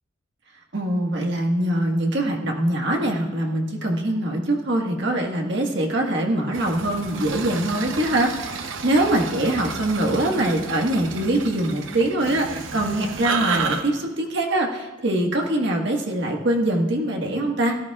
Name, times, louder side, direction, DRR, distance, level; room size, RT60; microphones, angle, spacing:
voice 1, 0.7-17.8, right 1 dB, 60° right, 0 dB, 1.6 m, -23 dB
sound 1, 6.5-13.8, right 5 dB, 75° right, 0.9 m, -31 dB
17.5 x 14.0 x 2.4 m, 1.2 s
head